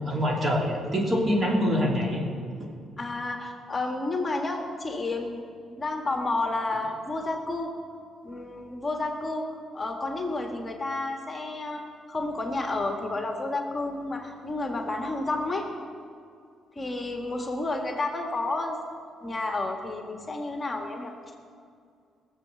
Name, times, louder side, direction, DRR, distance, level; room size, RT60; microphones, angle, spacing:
voice 1, 0.0-2.2, equal, 35° right, 0 dB, 2.9 m, -25 dB
voice 2, 3.0-5.4 5.8-7.7 8.2-11.8 12.1-15.7 16.7-18.8 19.2-21.1, left 2 dB, 25° left, 2 dB, 1.7 m, -31 dB
18.5 x 7.5 x 7.1 m, 2.3 s
cardioid pair, 90°, 0 cm